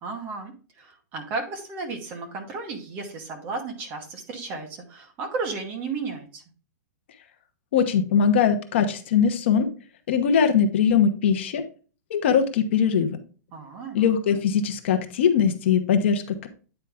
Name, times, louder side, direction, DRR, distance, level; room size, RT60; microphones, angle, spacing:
voice 1, 0.0-6.4 13.5-14.0, right 4 dB, 20° right, 4 dB, 0.9 m, -34 dB
voice 2, 7.7-9.7 10.1-11.6 12.1-13.2 13.9-16.5, left 7 dB, 40° left, 8 dB, 0.9 m, -21 dB
9.0 x 4.5 x 3.4 m, 0.36 s
hypercardioid pair, 180°, 9 cm